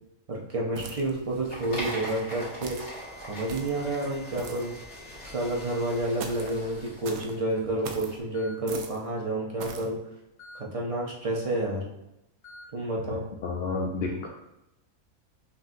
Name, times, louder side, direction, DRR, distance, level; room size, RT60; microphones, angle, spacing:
voice 1, 0.3-2.8 3.3-4.7 5.3-10.0 10.5-11.9 12.7-13.2, right 1 dB, 45° right, -3 dB, 0.4 m, -30 dB
sound 1, 0.8-1.2 1.8-2.1 2.6-2.9 3.5-3.8 4.4-4.7 6.2-6.6 7.0-7.3 7.8-8.1 8.7-9.0 9.6-9.9, right 5 dB, 85° right, 1.1 m, -40 dB
sound 2, 1.0-8.2, equal, 40° left, 1.9 m, -42 dB
Alarm, 2.1-6.0 6.4-6.8 7.6-7.7 8.3-8.6 10.4-10.6 12.4-12.7, left 2 dB, 85° left, 1.9 m, -50 dB
voice 2, 13.4-14.3, left 3 dB, 65° left, -1 dB, 0.6 m, -30 dB
5.8 x 2.7 x 2.5 m, 0.88 s
omnidirectional pair, 1.5 m